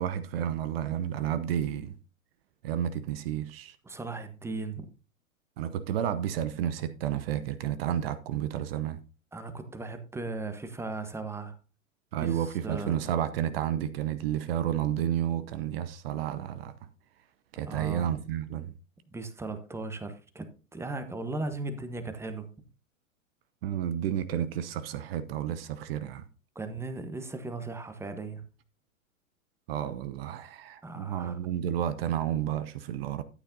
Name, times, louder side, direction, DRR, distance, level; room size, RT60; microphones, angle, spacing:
voice 1, 0.0-1.9 2.6-3.8 5.6-9.0 12.1-16.7 17.5-18.7 23.6-26.2 29.7-33.2, right 10 dB, 45° right, 0.8 m, -31 dB
voice 2, 3.8-4.9 9.3-11.6 12.2-13.0 17.6-18.1 19.1-20.5 20.7-22.5 26.5-28.4 30.8-31.4, right 3 dB, 5° right, 1.1 m, -37 dB
13.0 x 9.0 x 2.7 m
figure-of-eight pair, 105°, 42 cm